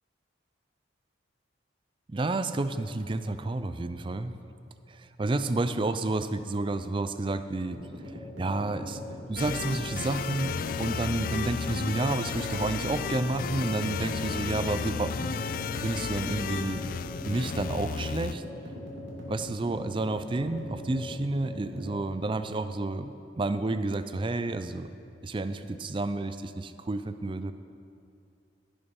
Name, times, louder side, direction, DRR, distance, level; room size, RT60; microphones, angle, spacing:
voice 1, 2.1-4.3 4.9-7.8 8.4-9.0 9.3-15.3 15.7-16.8 17.2-18.4 19.3-23.1 23.4-24.9 25.2-27.5, right 2 dB, 25° right, 11 dB, 0.4 m, -30 dB
sound 1, 7.7-22.0, left 1 dB, 70° right, 2.6 m, -41 dB
sound 2, 9.4-18.3, left 6 dB, 45° left, 0.3 m, -33 dB
15.5 x 6.9 x 5.4 m, 2.6 s
head